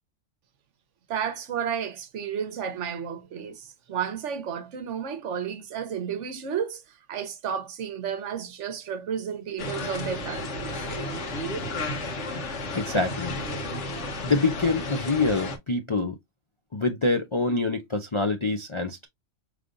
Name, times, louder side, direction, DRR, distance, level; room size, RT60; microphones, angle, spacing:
voice 1, 1.1-10.9, right 7 dB, 70° right, 1.1 m, -32 dB
sound 1, 9.6-15.6, left 2 dB, 65° left, 1.3 m, -32 dB
voice 2, 12.7-13.4 14.2-16.2 16.7-19.1, left 3 dB, 45° left, 0.4 m, -25 dB
5.1 x 3.2 x 2.5 m
omnidirectional pair, 1.3 m